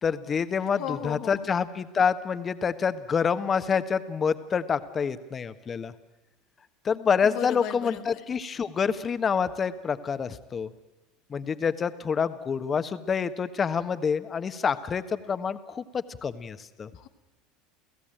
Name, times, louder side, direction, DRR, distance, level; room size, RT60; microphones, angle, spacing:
voice 1, 0.0-5.9 6.8-10.7 11.3-16.9, left 6 dB, 30° left, 10 dB, 1.4 m, -27 dB
voice 2, 0.8-1.4 7.3-8.0, left 12 dB, 60° left, 6 dB, 1.2 m, -34 dB
29.5 x 15.5 x 9.1 m, 1.1 s
hypercardioid pair, 80°, 0 cm